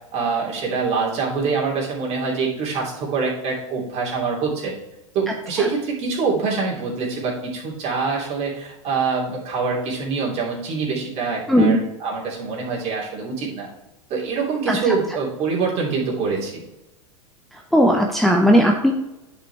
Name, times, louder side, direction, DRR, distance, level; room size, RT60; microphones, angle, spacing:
voice 1, 0.1-4.8 5.1-13.7 14.1-16.6, right 4 dB, 40° right, -3 dB, 3.0 m, -25 dB
voice 2, 17.7-18.9, equal, ahead, 1 dB, 0.8 m, -16 dB
9.9 x 5.3 x 3.4 m, 0.95 s
hypercardioid pair, 90°, 17 cm